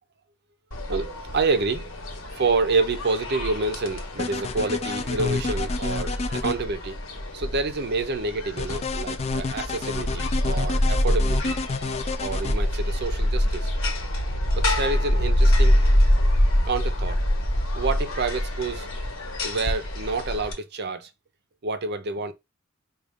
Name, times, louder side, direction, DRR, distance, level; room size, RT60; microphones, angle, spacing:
sound 1, 0.7-20.5, left 1 dB, 80° left, 1.2 m, -25 dB
voice 1, 0.9-1.9 2.4-7.0 7.3-11.6 12.2-13.7 14.5-15.8 16.6-17.2 17.7-18.9 19.4-21.1 21.6-22.3, right 3 dB, 55° right, 0.6 m, -28 dB
sound 2, 4.1-6.5 8.6-12.5, left 4 dB, 30° left, 0.4 m, -29 dB
4.9 x 2.3 x 3.5 m
head